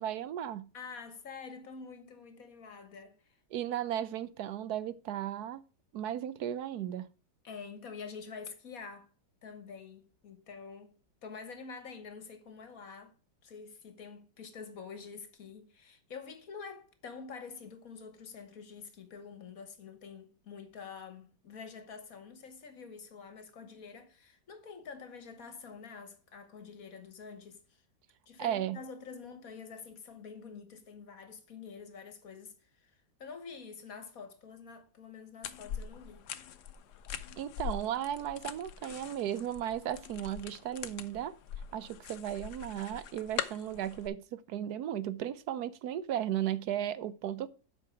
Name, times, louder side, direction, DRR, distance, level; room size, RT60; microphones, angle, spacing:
voice 1, 0.0-0.7 3.5-5.6 5.9-7.1 28.4-28.8 37.4-41.3 41.7-47.5, right 11 dB, 70° right, 1.1 m, -35 dB
voice 2, 0.7-3.2 7.4-9.1 9.4-13.1 13.4-27.8 28.3-32.9 33.2-36.3, left 5 dB, 55° left, 1.6 m, -47 dB
sound 1, 35.4-44.1, left 9 dB, 70° left, 1.3 m, -43 dB
8.2 x 5.7 x 5.7 m
omnidirectional pair, 1.9 m